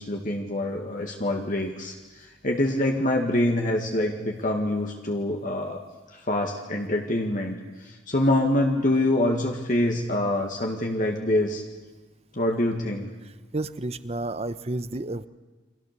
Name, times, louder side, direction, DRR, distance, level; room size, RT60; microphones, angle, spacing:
voice 1, 0.0-5.8 6.1-11.6 12.3-13.1, left 1 dB, 45° left, 1 dB, 2.0 m, -25 dB
voice 2, 13.5-15.3, right 2 dB, 35° right, 13 dB, 0.9 m, -31 dB
29.5 x 24.0 x 6.9 m, 1.3 s
head